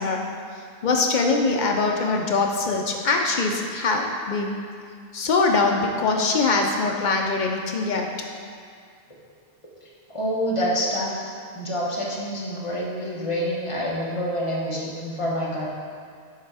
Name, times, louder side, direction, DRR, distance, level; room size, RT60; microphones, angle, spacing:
voice 1, 0.0-4.7 5.1-8.1, left 3 dB, 60° left, 2 dB, 0.5 m, -23 dB
voice 2, 10.1-15.7, equal, 30° left, -5 dB, 0.9 m, -27 dB
6.6 x 3.4 x 4.7 m, 2.2 s
omnidirectional pair, 1.2 m